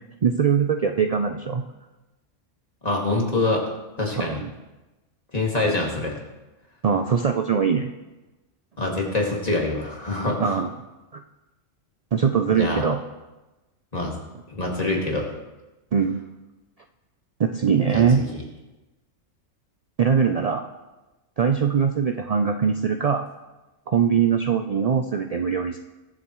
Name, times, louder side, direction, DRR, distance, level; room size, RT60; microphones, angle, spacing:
voice 1, 0.2-1.6 4.2-4.5 6.8-7.9 10.4-10.7 11.1-11.2 12.1-13.0 15.9-16.2 17.4-18.2 20.0-20.6 21.4-23.2 23.9-25.8, right 6 dB, 65° right, 6 dB, 0.3 m, -21 dB
voice 2, 2.8-3.6 4.0-4.4 5.3-6.1 8.8-10.6 12.5-12.8 13.9-14.1 14.5-15.3 17.9-18.0 18.3-18.4, left 2 dB, 30° left, -2 dB, 2.2 m, -25 dB
21.0 x 7.9 x 3.1 m, 1.1 s
omnidirectional pair, 1.3 m